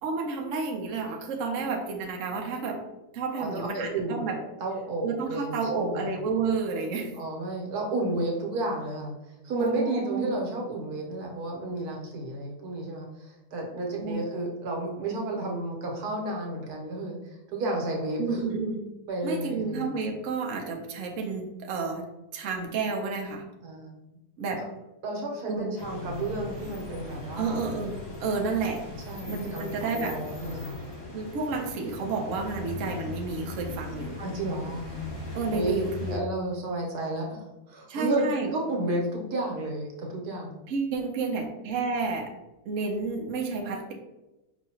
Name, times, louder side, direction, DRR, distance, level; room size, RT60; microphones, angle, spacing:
voice 1, 0.0-2.8 3.1-4.4 5.0-7.1 9.6-10.4 14.0-14.3 18.2-18.8 19.2-22.0 22.3-23.4 24.4-24.6 25.4-25.7 27.4-27.9 28.2-28.8 29.3-30.2 31.1-34.2 35.3-36.2 37.9-38.5 40.7-42.3 42.7-43.9, right 4 dB, 65° right, 1 dB, 0.9 m, -30 dB
voice 2, 3.3-4.3 4.6-6.2 7.2-9.1 9.4-18.5 19.1-19.9 23.6-23.9 25.0-27.6 29.1-30.9 34.2-34.9 35.5-35.8 36.1-40.6, right 2 dB, 85° right, -1 dB, 1.4 m, -32 dB
sound 1, 25.8-36.2, left 3 dB, 65° left, 2.0 m, -39 dB
5.0 x 2.7 x 2.8 m, 0.99 s
omnidirectional pair, 1.6 m